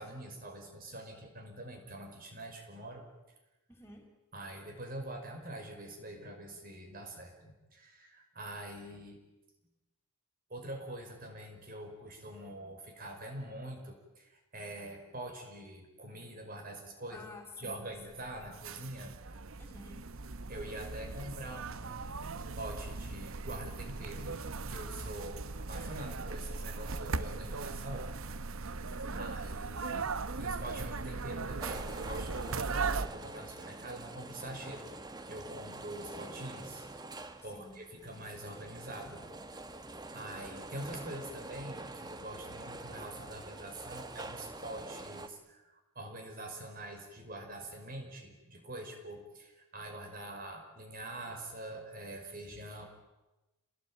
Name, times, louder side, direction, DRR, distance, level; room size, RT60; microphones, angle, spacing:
voice 1, 0.0-3.1 4.3-9.2 10.5-17.3 17.6-19.2 20.5-24.4 24.7-28.1 28.8-34.8 35.3-36.8 37.4-39.3 40.1-45.6 46.0-52.9, right 1 dB, 40° right, 3 dB, 5.6 m, -45 dB
voice 2, 3.7-4.1 17.1-18.3 19.6-20.0 28.9-29.3 37.5-37.7, left 2 dB, 10° left, 1 dB, 4.7 m, -51 dB
sound 1, 18.0-33.1, right 4 dB, 65° right, 0.9 m, -38 dB
sound 2, 31.6-45.3, right 2 dB, 20° right, 1.4 m, -46 dB
28.5 x 19.5 x 9.0 m, 1.0 s
head